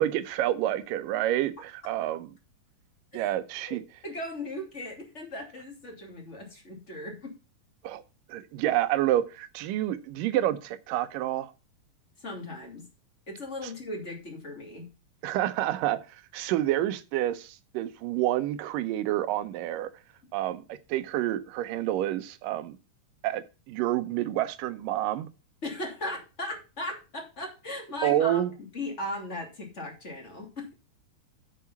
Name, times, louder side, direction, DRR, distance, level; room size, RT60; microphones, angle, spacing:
voice 1, 0.0-2.3 3.1-3.8 7.8-8.0 8.3-11.5 15.2-16.0 16.3-19.9 20.3-22.8 23.2-25.3 28.0-28.5, right 13 dB, 90° right, 2.5 m, -28 dB
voice 2, 3.7-7.4 12.2-12.9 13.3-14.9 25.6-28.4 28.7-30.7, left 1 dB, 20° left, 2.7 m, -37 dB
8.4 x 6.8 x 5.6 m
omnidirectional pair, 3.8 m